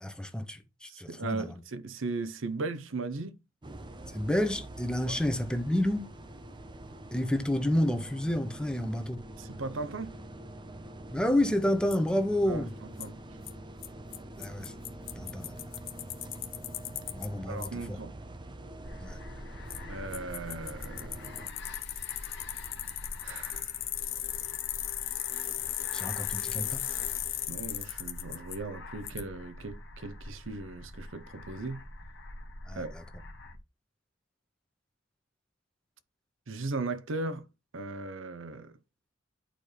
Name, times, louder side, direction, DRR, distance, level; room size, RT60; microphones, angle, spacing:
voice 1, 0.0-1.5 4.1-6.1 7.1-9.2 11.1-12.7 14.4-14.7 15.1-15.6 17.1-18.0 19.0-19.2 25.9-26.8 32.7-33.0, left 1 dB, 5° left, 0.9 m, -30 dB
voice 2, 0.9-3.4 5.1-5.2 9.4-10.2 12.5-13.2 17.5-18.2 19.9-21.3 22.0-22.3 23.2-23.8 27.5-31.8 32.7-32.9 36.5-37.5 37.7-38.7, right 3 dB, 80° right, 0.7 m, -37 dB
sound 1, 3.6-21.5, right 1 dB, 25° right, 0.6 m, -45 dB
Bicycle, 11.9-12.0 13.0-13.1 13.5-13.6 13.8-13.9 14.1-14.2 14.4-17.3 17.6-17.7 19.7-19.8 20.1-28.6 29.1-29.2, left 13 dB, 85° left, 0.8 m, -36 dB
sound 2, 18.8-33.6, left 2 dB, 65° left, 1.2 m, -45 dB
10.0 x 4.4 x 3.3 m
head